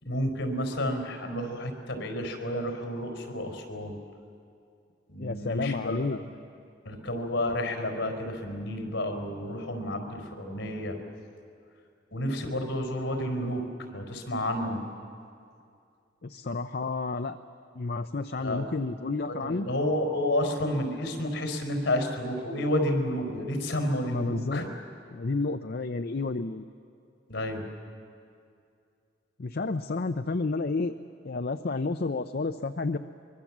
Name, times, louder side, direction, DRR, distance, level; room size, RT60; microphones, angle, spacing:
voice 1, 0.0-4.0 5.1-6.3 6.8-11.0 12.1-14.8 18.4-18.6 19.3-24.7 27.3-27.7, left 1 dB, 70° left, 4 dB, 4.5 m, -30 dB
voice 2, 5.2-6.2 16.2-17.4 17.7-19.7 24.0-24.6 25.1-26.6 29.4-30.9 31.2-33.0, left 3 dB, 55° left, 8 dB, 0.6 m, -30 dB
24.0 x 23.5 x 7.4 m, 2.4 s
head